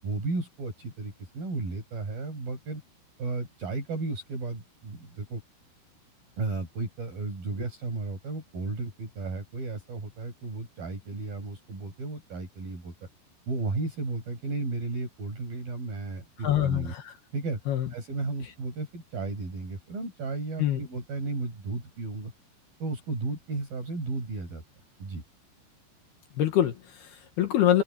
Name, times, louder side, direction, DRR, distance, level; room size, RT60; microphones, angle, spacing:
voice 1, 0.0-2.8 3.2-5.4 6.4-12.9 13.5-16.9 17.3-17.6 17.9-22.3 22.8-24.6 25.0-25.2, right 3 dB, 50° right, 7.5 m, -34 dB
voice 2, 16.4-17.1 17.7-17.9 20.6-20.8 26.4-27.8, left 11 dB, 65° left, 3.3 m, -25 dB
omnidirectional pair, 5.4 m